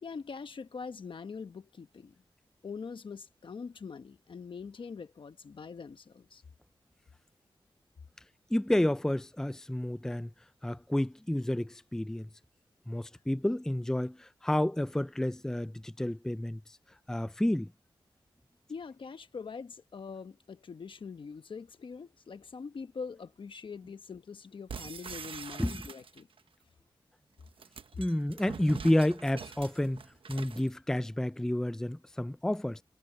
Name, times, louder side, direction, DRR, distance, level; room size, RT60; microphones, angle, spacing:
voice 1, 0.0-2.1 2.6-6.4 18.7-26.3, left 5 dB, 70° left, 1.1 m, -43 dB
voice 2, 8.5-10.3 10.6-12.3 12.9-16.6 17.1-17.7 25.6-25.8 28.0-30.0 30.3-32.8, left 1 dB, 5° left, 0.4 m, -30 dB
sound 1, 24.7-26.4 27.4-30.7, right 6 dB, 80° right, 1.0 m, -44 dB
wide cardioid pair, 95°, 9 cm